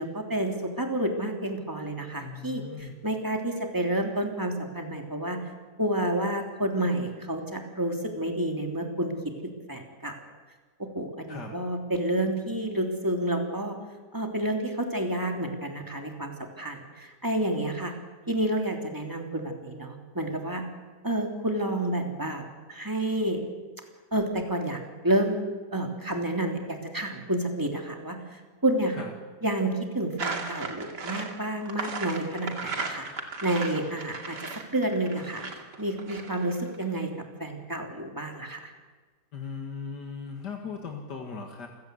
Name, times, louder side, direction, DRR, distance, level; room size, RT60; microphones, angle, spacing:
voice 1, 0.0-5.4 5.8-9.1 9.4-10.2 10.8-13.8 14.1-17.9 18.3-20.6 21.0-22.4 22.7-23.4 24.1-25.4 25.7-28.2 28.6-29.0 29.4-33.1 33.4-34.4 34.7-35.4 35.8-37.1 37.4-38.7, right 1 dB, 10° right, 2 dB, 3.1 m, -29 dB
voice 2, 2.2-3.0 11.3-11.6 29.0-29.1 39.3-41.7, left 5 dB, 80° left, 2 dB, 2.6 m, -38 dB
sound 1, 30.2-36.8, right 4 dB, 80° right, 3.0 m, -36 dB
28.0 x 16.5 x 8.2 m, 1.4 s
omnidirectional pair, 1.8 m